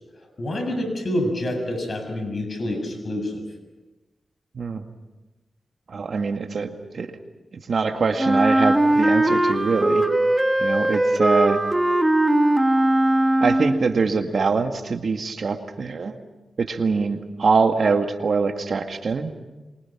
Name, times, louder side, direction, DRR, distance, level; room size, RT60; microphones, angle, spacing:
voice 1, 0.2-3.4, left 1 dB, 55° left, 6 dB, 7.0 m, -27 dB
voice 2, 4.5-4.9 5.9-7.1 7.5-10.0 10.6-11.6 13.4-16.2 16.6-19.4, right 4 dB, 65° right, 6 dB, 2.0 m, -23 dB
Wind instrument woodwind instrument, 8.2-14.0, right 1 dB, 20° right, 2.3 m, -19 dB
28.0 x 24.0 x 6.0 m, 1.1 s
cardioid pair, 45°, 0 cm